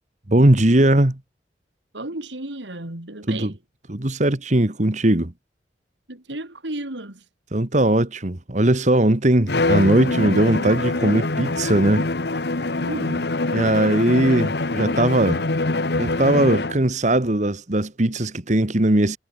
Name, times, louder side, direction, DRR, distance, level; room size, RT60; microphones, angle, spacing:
voice 1, 0.3-1.2 3.3-3.5 3.9-5.3 7.5-12.1 13.5-15.4 16.0-19.2, right 1 dB, 40° right, 1.6 m, -19 dB
voice 2, 1.9-3.6 6.1-7.2 12.8-13.3, right 1 dB, 85° right, 3.2 m, -33 dB
Bowed string instrument, 9.5-16.9, left 2 dB, 65° left, 1.3 m, -24 dB
head